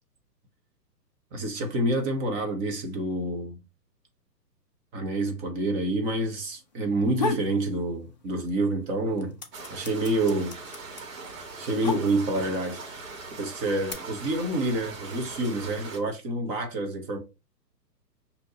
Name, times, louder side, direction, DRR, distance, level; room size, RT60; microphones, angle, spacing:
voice 1, 1.3-3.6 4.9-9.4 9.7-10.6 11.6-13.0 13.4-17.2, right 1 dB, 20° right, 0.7 m, -28 dB
sound 1, 6.9-7.6 8.0-8.7 8.9-12.5 13.3-13.9, left 3 dB, 30° left, 0.3 m, -32 dB
sound 2, 9.5-16.0, right 4 dB, 55° right, 1.7 m, -41 dB
6.1 x 2.7 x 2.8 m
hypercardioid pair, 125°, 50 cm